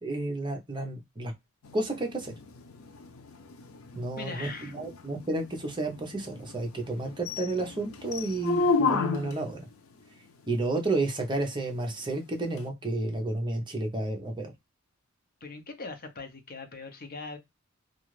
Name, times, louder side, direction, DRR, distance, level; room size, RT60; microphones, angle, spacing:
voice 1, 0.0-1.3 1.7-2.3 3.9-9.7 10.5-14.5, right 2 dB, 25° right, 0.7 m, -31 dB
sound 1, 1.6-9.5 12.6-12.7, left 4 dB, 85° left, 0.5 m, -32 dB
voice 2, 4.2-4.7 15.4-17.4, left 3 dB, 45° left, 0.7 m, -40 dB
2.4 x 2.4 x 3.0 m
head